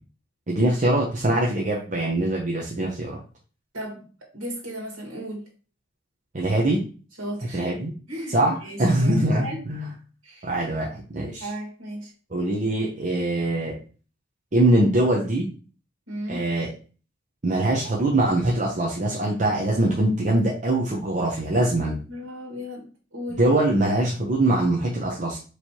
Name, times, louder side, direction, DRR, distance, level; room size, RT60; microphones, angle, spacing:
voice 1, 0.5-3.2 6.3-6.8 7.5-7.9 8.3-9.9 10.4-11.5 12.3-13.8 14.5-15.5 16.3-16.7 17.4-22.0 23.4-25.4, right 1 dB, 35° right, -3 dB, 0.7 m, -23 dB
voice 2, 3.7-4.1 4.3-5.4 7.2-7.8 8.1-8.4 8.6-9.6 10.2-10.5 11.4-12.1 16.1-16.4 22.1-23.7, equal, 90° right, -1 dB, 1.7 m, -35 dB
4.5 x 3.2 x 2.8 m, 0.37 s
head